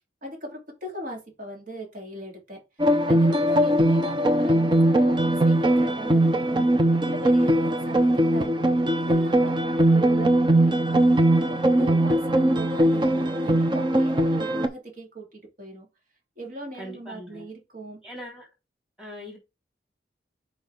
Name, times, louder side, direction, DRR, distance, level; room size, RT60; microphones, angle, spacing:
voice 1, 0.2-2.6 3.1-6.7 7.0-11.0 11.4-15.9 16.4-18.0, equal, 50° right, 2.9 m, -39 dB
sound 1, 2.8-14.7, right 1 dB, 25° right, 0.7 m, -20 dB
voice 2, 16.8-17.5 18.0-18.5 19.0-19.4, equal, 5° right, 3.6 m, -41 dB
8.1 x 4.8 x 3.5 m
head